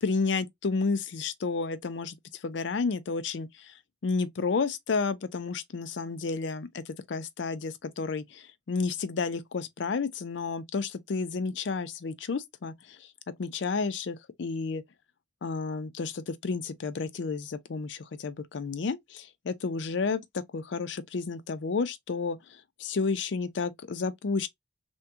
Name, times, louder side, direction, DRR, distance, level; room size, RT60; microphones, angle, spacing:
voice 1, 0.0-2.2 2.4-3.7 4.0-13.1 13.4-14.8 15.4-24.5, left 4 dB, 75° left, 0.5 m, -31 dB
3.5 x 2.2 x 2.7 m
head